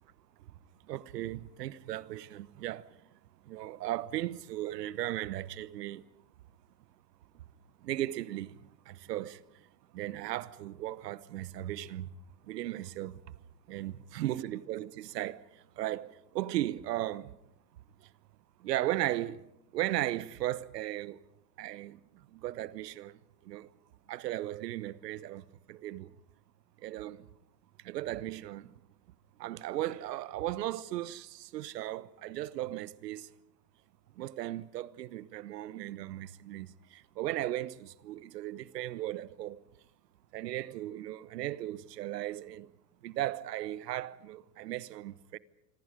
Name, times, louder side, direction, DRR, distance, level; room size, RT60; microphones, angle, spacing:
voice 1, 0.8-3.0 3.4-6.0 7.3-7.4 7.8-9.7 9.9-12.1 12.4-13.3 13.7-17.3 18.0-18.1 18.6-19.5 19.7-21.2 21.6-23.7 24.1-26.2 26.8-27.3 27.8-28.7 29.4-33.3 34.2-39.6 40.3-42.7 43.0-45.4, right 14 dB, 80° right, 1.1 m, -37 dB
26.0 x 25.0 x 5.1 m
hypercardioid pair, 110°, 49 cm